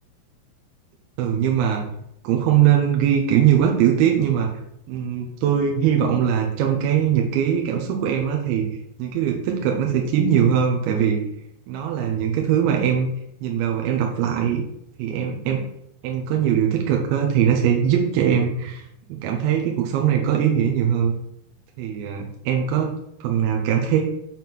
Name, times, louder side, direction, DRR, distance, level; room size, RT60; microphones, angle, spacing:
voice 1, 1.2-1.8 2.2-4.5 4.9-8.7 9.0-11.2 11.7-13.1 13.4-14.6 15.0-15.6 16.0-18.8 19.1-21.1 21.8-24.0, right 9 dB, 80° right, 1 dB, 2.6 m, -21 dB
7.5 x 3.6 x 5.9 m, 0.75 s
omnidirectional pair, 4.8 m